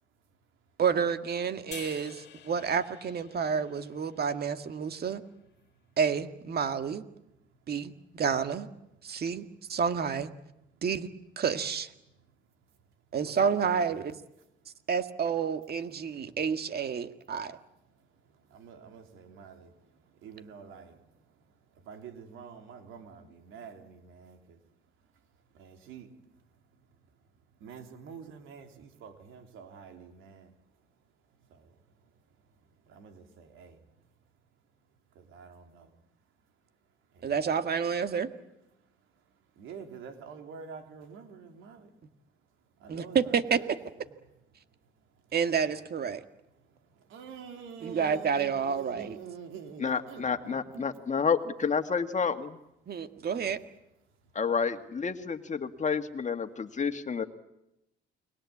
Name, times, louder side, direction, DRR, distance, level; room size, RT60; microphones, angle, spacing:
voice 1, 0.8-5.2 6.0-7.0 7.7-8.7 9.0-10.3 10.8-11.1 11.4-11.9 13.1-14.2 14.9-17.6 37.2-38.3 42.9-43.6 45.3-46.2 47.8-49.2 52.9-53.6, right 6 dB, 50° right, 9 dB, 1.9 m, -29 dB
sound 1, 1.7-5.0, left 10 dB, 60° left, 2.1 m, -49 dB
voice 2, 13.2-14.1 17.9-24.6 25.5-26.3 27.6-30.6 31.4-32.4 32.8-33.8 35.1-35.9 37.1-37.3 39.1-39.2 39.5-41.9 42.8-43.7 44.8-45.2 46.6-50.9 53.3-53.6, right 6 dB, 90° right, 5 dB, 3.4 m, -48 dB
voice 3, 49.8-52.6 54.3-57.2, left 5 dB, 35° left, 8 dB, 1.9 m, -30 dB
30.0 x 21.5 x 8.6 m, 0.86 s
cardioid pair, 90°, 20 cm